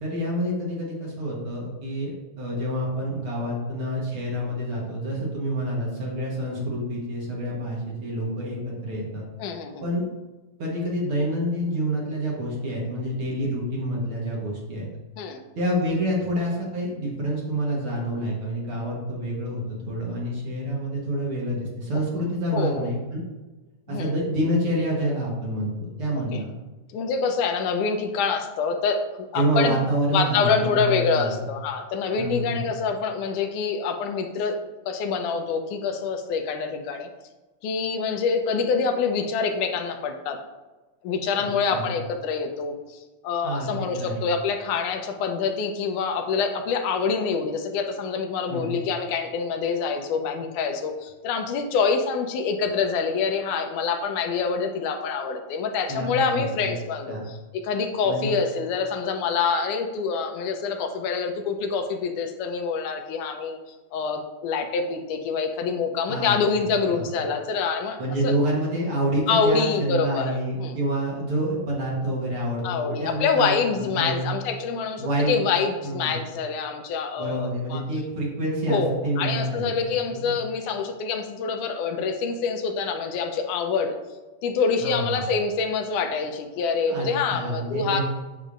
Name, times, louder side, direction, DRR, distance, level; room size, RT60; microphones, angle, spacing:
voice 1, 0.0-9.2 9.8-10.0 10.6-14.9 15.6-23.2 23.9-26.5 29.3-31.4 32.2-32.7 41.7-41.9 43.4-44.2 48.5-48.7 55.9-56.7 57.1-57.3 58.0-58.3 66.1-66.3 66.9-67.0 68.0-74.3 75.0-75.4 75.8-76.2 77.2-80.3 84.8-85.2 86.9-88.0, right 1 dB, 55° right, -3 dB, 1.9 m, -27 dB
voice 2, 9.4-9.9 15.2-15.4 22.5-22.9 23.9-24.1 26.2-26.4 26.9-29.8 30.1-34.6 34.9-37.1 37.6-40.4 41.0-63.6 63.9-68.0 68.2-68.3 69.3-70.8 72.6-77.8 78.7-84.0 84.4-88.0, left 5 dB, 90° left, 5 dB, 2.2 m, -26 dB
8.3 x 6.7 x 2.5 m, 1.2 s
omnidirectional pair, 3.5 m